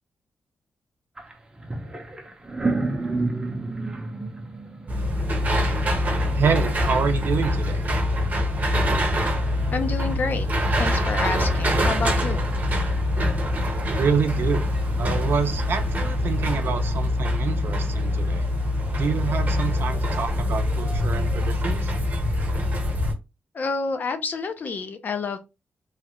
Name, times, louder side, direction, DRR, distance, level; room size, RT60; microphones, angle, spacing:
sound 1, 1.2-1.3 1.6-6.5, right 3 dB, 20° right, 0.7 m, -30 dB
sound 2, 4.9-23.1, left 1 dB, 40° right, 1.0 m, -24 dB
voice 1, 6.3-7.8 14.0-14.6 15.0-18.4 19.0-21.9, right 6 dB, 60° right, 0.6 m, -27 dB
voice 2, 9.7-12.5 23.5-25.4, left 4 dB, 45° left, 0.6 m, -29 dB
3.2 x 2.4 x 3.0 m
wide cardioid pair, 125°, 4 cm